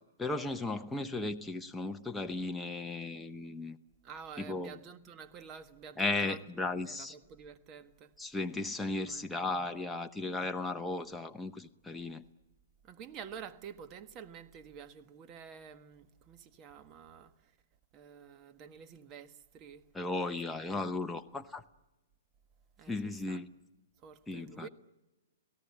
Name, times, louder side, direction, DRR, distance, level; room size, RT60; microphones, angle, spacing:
voice 1, 0.0-3.8 4.4-4.8 6.0-7.2 8.2-12.2 19.9-21.6 22.9-23.5 24.3-24.7, left 2 dB, 5° left, 0.8 m, -36 dB
voice 2, 4.0-6.4 6.8-8.1 9.0-9.3 12.8-17.5 17.9-19.9 20.7-21.0 22.8-23.4 24.0-24.7, right 7 dB, 30° right, 1.5 m, -49 dB
27.5 x 17.5 x 9.7 m
hypercardioid pair, 140°, 0 cm